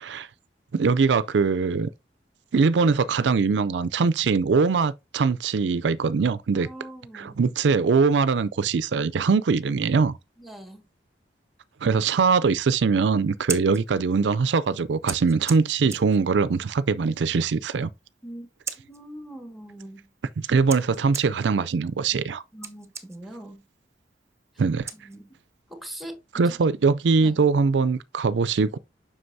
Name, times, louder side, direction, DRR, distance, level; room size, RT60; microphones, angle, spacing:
voice 1, 0.7-1.9 2.5-6.7 7.1-10.2 11.8-17.9 20.4-22.4 24.6-24.9 26.3-28.8, right 5 dB, 80° right, 0.4 m, -22 dB
voice 2, 6.5-7.4 10.4-10.8 18.2-18.5 18.8-20.1 22.5-23.6 24.9-25.3 25.7-26.2 26.4-26.6 27.2-27.4, right 1 dB, ahead, 1.6 m, -42 dB
Scissors, 13.2-25.6, right 5 dB, 15° right, 0.8 m, -42 dB
7.8 x 6.0 x 2.7 m
head